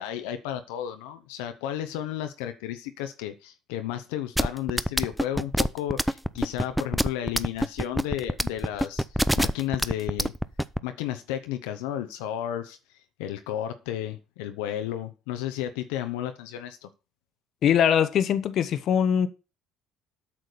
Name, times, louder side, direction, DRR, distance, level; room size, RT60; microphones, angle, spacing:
voice 1, 0.0-9.0 9.4-10.3 10.8-12.8 13.2-16.9, left 11 dB, 80° left, 0.9 m, -33 dB
sound 1, 4.4-10.8, equal, ahead, 0.6 m, -24 dB
voice 2, 17.6-19.3, left 8 dB, 55° left, 1.0 m, -22 dB
8.6 x 6.2 x 6.8 m
hypercardioid pair, 65°, 0 cm